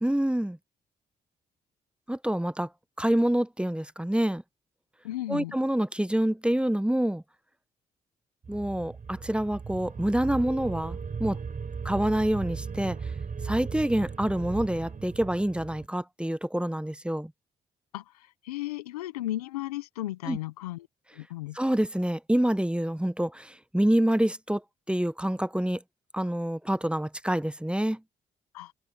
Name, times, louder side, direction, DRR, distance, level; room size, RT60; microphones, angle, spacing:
voice 1, 0.0-0.6 2.1-2.7 3.0-4.4 5.3-7.2 8.5-11.4 11.8-13.0 13.4-17.3 20.3-20.4 21.5-24.6 24.9-25.8 26.1-28.0, right 1 dB, 5° right, 1.0 m, -27 dB
voice 2, 5.0-5.5 17.9-20.9 21.1-21.6 28.5-28.7, left 15 dB, 90° left, 1.1 m, -35 dB
sound 1, 8.4-15.9, right 5 dB, 45° right, 7.9 m, -37 dB
hypercardioid pair, 40°, 19 cm